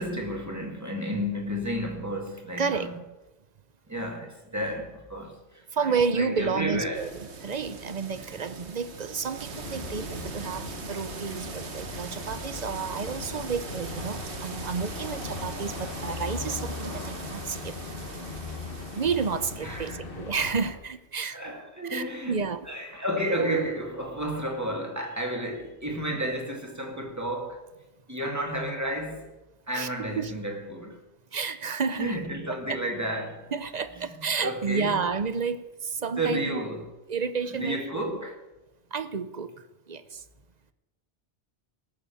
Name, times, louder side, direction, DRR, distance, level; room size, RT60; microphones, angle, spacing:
voice 1, 0.0-3.0 3.9-7.1 19.6-20.0 21.3-27.6 28.1-29.3 29.7-31.0 32.0-33.5 34.0-35.0 36.2-36.9 37.5-38.4, right 1 dB, 15° right, 2.2 m, -32 dB
voice 2, 2.6-2.9 5.7-17.6 18.9-21.4 21.8-22.7 29.7-29.9 30.2-30.3 31.3-32.2 32.5-32.6 33.5-35.6 35.9-36.6 37.1-38.0 38.9-39.5 39.9-40.0, right 5 dB, 45° right, 0.7 m, -30 dB
sound 1, 6.9-19.9, right 5 dB, 75° right, 1.5 m, -42 dB
sound 2, 9.5-20.7, left 3 dB, 55° left, 1.5 m, -38 dB
18.5 x 7.0 x 7.0 m
omnidirectional pair, 1.2 m